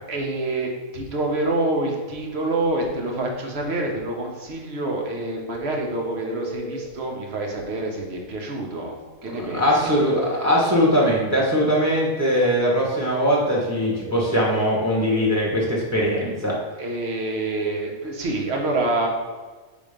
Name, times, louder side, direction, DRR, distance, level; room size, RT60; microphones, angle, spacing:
voice 1, 0.1-9.0 9.2-9.9 16.8-19.1, right 2 dB, 50° right, 0 dB, 1.2 m, -27 dB
sound 1, 2.3-2.7 5.5-7.0 9.8-11.2 14.0-15.4, right 3 dB, 70° right, 0.9 m, -34 dB
voice 2, 9.2-16.5, equal, 10° right, -4 dB, 1.3 m, -21 dB
5.2 x 3.8 x 5.0 m, 1.3 s
omnidirectional pair, 1.4 m